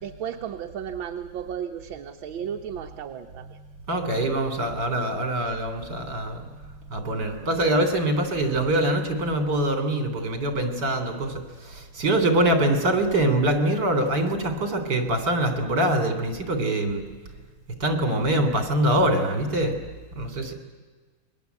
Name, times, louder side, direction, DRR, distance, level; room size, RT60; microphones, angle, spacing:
voice 1, 0.0-3.6, right 8 dB, 75° right, 5 dB, 1.8 m, -34 dB
voice 2, 3.9-6.4 6.9-17.0 17.8-19.7 20.2-20.5, right 1 dB, 55° right, 6 dB, 3.9 m, -24 dB
28.5 x 22.0 x 8.2 m, 1.4 s
omnidirectional pair, 2.2 m